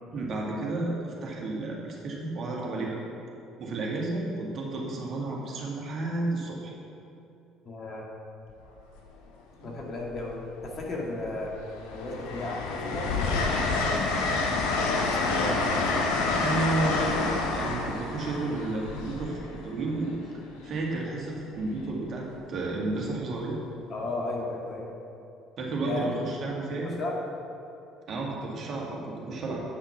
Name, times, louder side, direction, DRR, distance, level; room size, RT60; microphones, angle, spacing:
voice 1, 0.1-3.0 3.6-6.7 9.6-9.7 16.3-20.2 20.6-23.6 25.6-26.9 28.1-29.6, right 2 dB, 50° right, -2 dB, 1.9 m, -32 dB
voice 2, 7.6-8.1 9.6-10.4 10.6-11.5 11.9-13.4 13.7-16.0 23.9-24.9 25.8-26.1 26.7-27.2, left 2 dB, 45° left, -2 dB, 2.0 m, -35 dB
Train, 8.5-8.8 10.1-10.8 11.2-20.0 21.6-21.8, left 3 dB, 75° left, 1.0 m, -28 dB
8.6 x 5.6 x 5.8 m, 2.7 s
hypercardioid pair, 60°, 0 cm